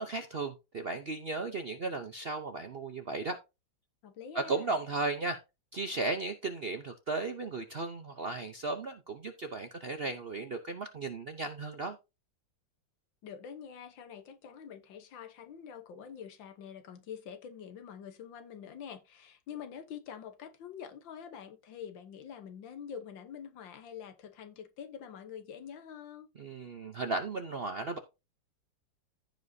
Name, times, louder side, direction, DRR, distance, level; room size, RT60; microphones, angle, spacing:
voice 1, 0.0-3.4 4.3-5.4 5.7-12.0 26.4-28.0, right 3 dB, 55° right, 0.6 m, -35 dB
voice 2, 4.0-4.8 13.2-26.3, left 8 dB, 80° left, 1.8 m, -46 dB
14.5 x 5.1 x 2.7 m
omnidirectional pair, 2.0 m